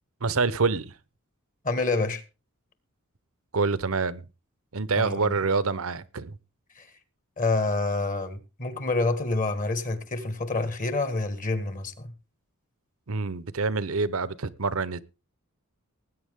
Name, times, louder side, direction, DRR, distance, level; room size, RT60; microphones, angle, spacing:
voice 1, 0.2-0.9 3.5-4.2 4.7-6.4 13.1-15.0, right 4 dB, 70° right, 0.9 m, -26 dB
voice 2, 1.6-2.2 5.0-5.3 6.8-6.9 7.4-12.1, left 3 dB, 40° left, 1.7 m, -27 dB
19.5 x 9.1 x 3.7 m
head